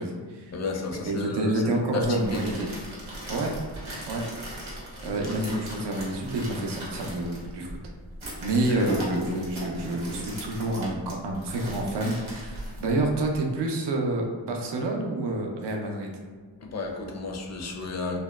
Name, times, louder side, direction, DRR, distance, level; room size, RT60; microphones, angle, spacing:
voice 1, 0.0-0.6 0.9-2.7 3.3-3.5 4.1-4.2 5.0-7.8 8.4-16.1, right 2 dB, 60° right, 1 dB, 0.5 m, -28 dB
voice 2, 0.5-2.0 5.0-5.2 8.7-8.9 16.6-18.2, left 3 dB, 35° left, 2 dB, 0.4 m, -33 dB
sound 1, 2.0-13.4, right 1 dB, 90° right, 0.8 m, -38 dB
2.7 x 2.1 x 2.2 m, 1.5 s
cardioid pair, 55°, 47 cm